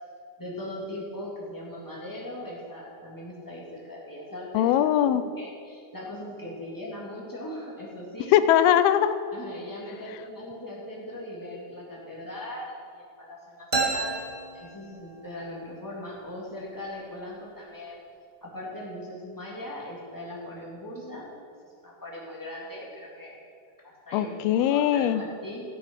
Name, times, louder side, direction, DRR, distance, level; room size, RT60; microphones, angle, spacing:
voice 1, 0.4-4.9 5.4-8.4 9.3-14.2 14.5-18.0 18.4-21.3 21.8-23.4 23.8-25.6, left 1 dB, 5° left, -5 dB, 2.5 m, -39 dB
voice 2, 4.5-5.2 8.3-9.2 24.1-25.2, left 10 dB, 90° left, 12 dB, 2.5 m, -21 dB
sound 1, 13.7-15.4, right 4 dB, 25° right, 1.1 m, -30 dB
15.5 x 8.3 x 6.5 m, 2.2 s
omnidirectional pair, 4.3 m